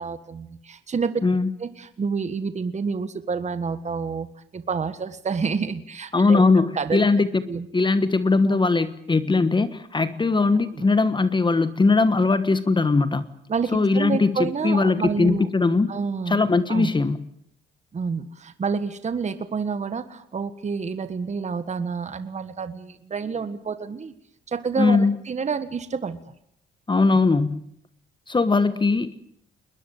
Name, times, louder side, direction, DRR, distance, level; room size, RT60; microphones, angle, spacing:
voice 1, 0.0-1.1 1.6-4.3 4.5-7.1 7.5-7.7 8.5-8.6 10.7-10.8 13.5-15.5 15.9-16.4 16.7-16.9 17.9-24.1 24.5-26.2, right 5 dB, 35° right, 11 dB, 1.6 m, -28 dB
voice 2, 6.1-7.4 7.7-13.2 13.7-15.9 16.3-17.2 24.8-25.2 26.9-27.6 28.3-29.2, left 3 dB, 25° left, 13 dB, 1.4 m, -20 dB
21.5 x 21.0 x 9.2 m, 0.70 s
cardioid pair, 90°, 20 cm